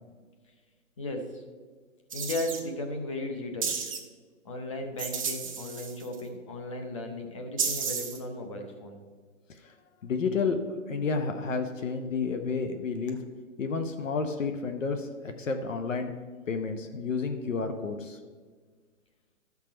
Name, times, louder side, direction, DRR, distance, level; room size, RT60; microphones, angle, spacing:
voice 1, 1.0-1.4 2.1-3.8 4.4-9.0 13.1-13.2, left 1 dB, 20° left, 4 dB, 0.8 m, -36 dB
sound 1, 2.1-2.6 3.6-4.0 5.0-6.2 7.6-8.2, right 6 dB, 25° right, 0.7 m, -32 dB
voice 2, 10.0-10.6 10.9-13.2 13.6-15.1 15.4-16.1 16.5-18.2, left 4 dB, 65° left, 6 dB, 1.0 m, -30 dB
13.0 x 6.0 x 4.4 m, 1.5 s
hypercardioid pair, 165°, 42 cm